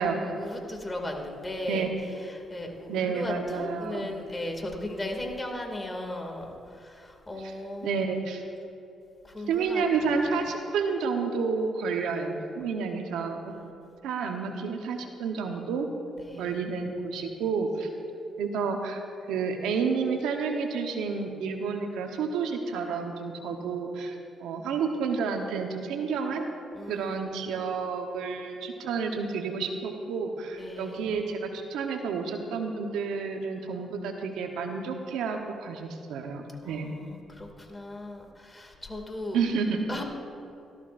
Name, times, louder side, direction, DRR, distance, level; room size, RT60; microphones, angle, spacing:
voice 1, 0.0-1.9 2.3-8.0 9.2-10.1 13.8-14.0 16.2-16.6 26.7-27.2 27.5-27.6 30.6-31.1 36.6-39.4 39.9-40.0, left 1 dB, 20° left, 2 dB, 2.4 m, -37 dB
voice 2, 2.9-4.1 7.4-7.5 7.8-8.4 9.5-13.5 14.0-15.9 16.4-17.9 18.4-19.0 19.3-26.5 26.9-36.9 39.3-39.9, right 5 dB, 85° right, 4 dB, 1.0 m, -30 dB
17.5 x 13.5 x 2.6 m, 2.7 s
supercardioid pair, 65°, 0 cm